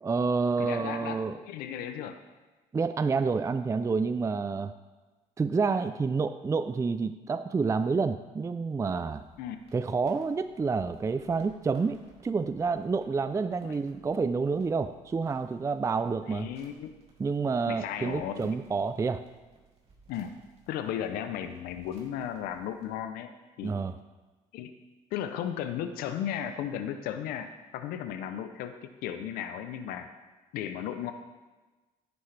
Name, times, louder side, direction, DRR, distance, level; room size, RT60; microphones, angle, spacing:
voice 1, 0.0-1.4 2.7-4.7 5.4-9.2 9.7-16.5 17.2-19.2 23.6-24.0, right 4 dB, 20° right, 11 dB, 0.4 m, -29 dB
voice 2, 0.6-2.2 9.4-9.6 13.6-13.8 16.3-17.0 17.7-18.6 20.1-20.3 20.7-23.3 23.6-23.8 24.5-24.7 25.1-28.7 29.0-30.1 30.5-31.1, left 9 dB, 85° left, 8 dB, 0.6 m, -35 dB
sound 1, 8.9-22.9, right 4 dB, 45° right, 2.7 m, -61 dB
10.0 x 9.4 x 3.3 m, 1.2 s
supercardioid pair, 80°, 15 cm